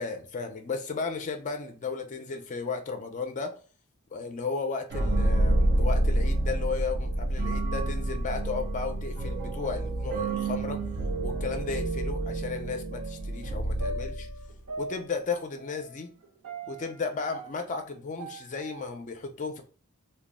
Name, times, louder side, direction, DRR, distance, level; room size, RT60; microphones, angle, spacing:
voice 1, 0.0-3.5 4.1-10.8 11.2-14.3 14.8-16.1 16.7-19.6, left 4 dB, 35° left, 0.4 m, -34 dB
sound 1, 4.9-14.6, right 1 dB, 50° right, 0.4 m, -28 dB
sound 2, 7.5-8.0 8.3-11.1 11.8-11.9 12.9-18.9, right 4 dB, 85° right, 0.6 m, -42 dB
2.2 x 2.0 x 3.5 m
head